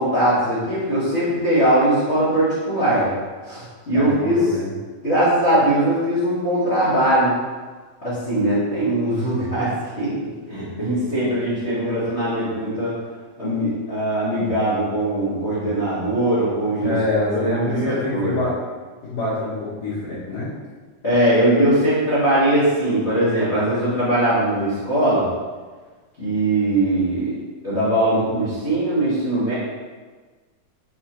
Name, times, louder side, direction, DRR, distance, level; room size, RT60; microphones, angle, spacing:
voice 1, 0.0-3.1 3.4-4.4 5.0-7.3 8.0-9.7 10.0-12.9 13.4-17.0 17.3-18.4 21.0-25.3 26.2-27.3 27.6-29.5, right 1 dB, 80° left, -13 dB, 0.5 m, -20 dB
voice 2, 3.9-4.7 16.8-18.5 19.0-20.5, left 2 dB, 60° left, -12 dB, 2.1 m, -25 dB
4.4 x 4.2 x 2.9 m, 1.4 s
omnidirectional pair, 3.5 m